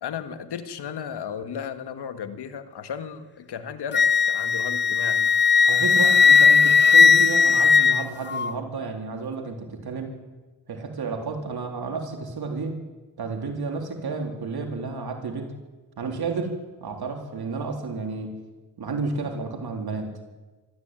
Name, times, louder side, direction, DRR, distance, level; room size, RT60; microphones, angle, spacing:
voice 1, 0.0-5.3, left 7 dB, 80° left, 10 dB, 2.0 m, -35 dB
Wind instrument woodwind instrument, 3.9-8.5, left 5 dB, 30° left, 0.6 m, -17 dB
voice 2, 5.6-10.2 10.7-12.8 13.2-15.5 16.0-16.5 16.8-18.3 18.8-20.1, right 4 dB, 70° right, 3 dB, 3.8 m, -31 dB
24.5 x 13.5 x 9.2 m, 1.2 s
cardioid pair, 60°, 40 cm